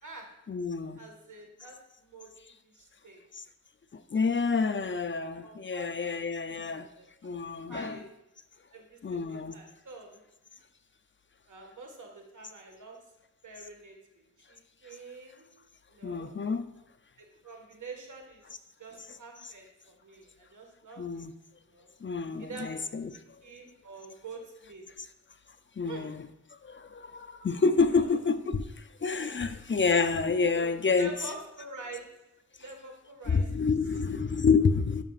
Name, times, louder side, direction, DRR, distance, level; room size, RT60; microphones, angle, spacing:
voice 1, 0.5-1.0 3.3-3.4 3.9-6.9 7.2-8.0 9.0-9.6 16.0-16.6 19.4-19.5 21.0-21.3 22.0-23.1 25.8-26.3 26.6-31.1 33.2-35.0, left 4 dB, 40° left, 9 dB, 0.5 m, -28 dB
voice 2, 1.0-2.3 2.6-3.2 4.5-4.8 5.4-6.2 6.7-7.1 7.7-8.1 8.7-10.2 11.5-13.0 13.4-14.0 14.5-15.5 15.9-16.3 17.2-21.3 21.6-21.9 22.4-22.8 23.1-24.8 25.8-26.1 27.9-28.2 29.5-29.6 30.5-32.0 32.6-33.7, right 3 dB, 70° right, 1 dB, 1.6 m, -47 dB
13.0 x 5.9 x 2.4 m, 0.93 s
wide cardioid pair, 75°, 31 cm